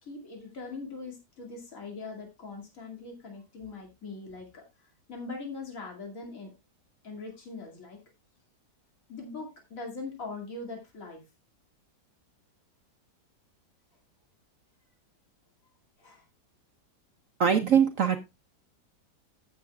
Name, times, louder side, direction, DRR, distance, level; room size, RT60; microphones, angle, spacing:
voice 1, 0.0-6.5 7.0-8.0 9.1-11.2 16.0-16.2, left 3 dB, 50° left, 0 dB, 2.9 m, -41 dB
voice 2, 17.4-18.2, right 7 dB, 60° right, 6 dB, 1.0 m, -22 dB
15.0 x 7.6 x 2.4 m, 0.22 s
omnidirectional pair, 1.9 m